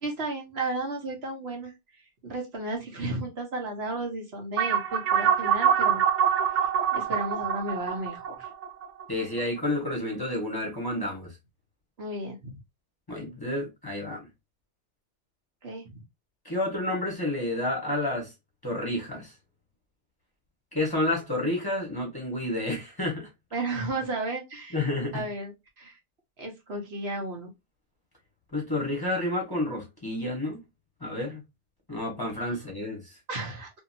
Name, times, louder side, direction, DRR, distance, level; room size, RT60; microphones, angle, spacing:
voice 1, 0.0-1.7 2.2-6.0 6.6-8.5 12.0-12.6 15.6-16.0 23.5-24.8 25.1-25.5 25.8-26.0 26.4-27.5 33.3-33.7, right 2 dB, 65° right, 1.3 m, -33 dB
sound 1, 4.6-9.4, right 8 dB, 80° right, 0.9 m, -25 dB
voice 2, 9.1-11.3 13.1-14.3 16.4-18.3 18.6-19.3 20.7-23.3 24.7-25.3 28.5-30.6 31.0-31.4 31.9-33.2, left 1 dB, 20° left, 1.1 m, -30 dB
2.8 x 2.7 x 2.6 m
omnidirectional pair, 1.2 m